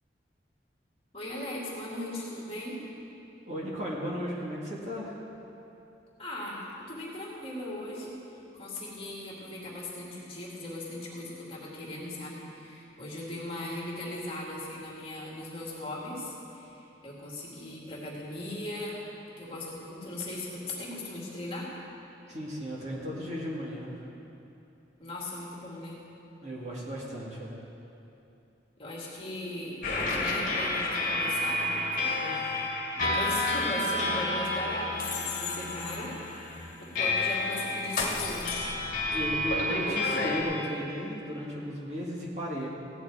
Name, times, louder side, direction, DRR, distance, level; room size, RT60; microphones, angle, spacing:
voice 1, 1.1-2.8 6.2-6.6 6.9-8.1 8.5-19.0 19.4-21.7 25.0-26.0 28.8-32.4 33.0-36.1 36.8-38.6, left 1 dB, 30° left, -4 dB, 2.3 m, -38 dB
voice 2, 3.5-5.2 22.3-24.0 26.4-27.5 32.3-32.4 39.1-42.7, equal, 40° right, -4 dB, 2.1 m, -35 dB
sound 1, 29.8-40.4, left 2 dB, 45° left, 1.9 m, -30 dB
16.0 x 10.0 x 4.8 m, 2.8 s
head